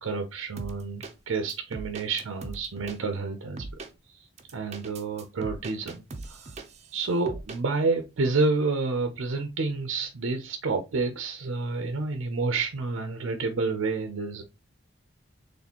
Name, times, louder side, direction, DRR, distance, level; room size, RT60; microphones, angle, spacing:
voice 1, 0.0-3.7 4.1-4.3 4.5-6.0 6.3-6.4 6.9-14.4, right 3 dB, 80° right, 5 dB, 0.6 m, -29 dB
sound 1, 0.6-1.1 1.5-3.0 3.6-3.9 4.4-6.9 7.3-7.6, right 2 dB, 30° right, 0.5 m, -39 dB
4.1 x 3.2 x 2.9 m, 0.25 s
head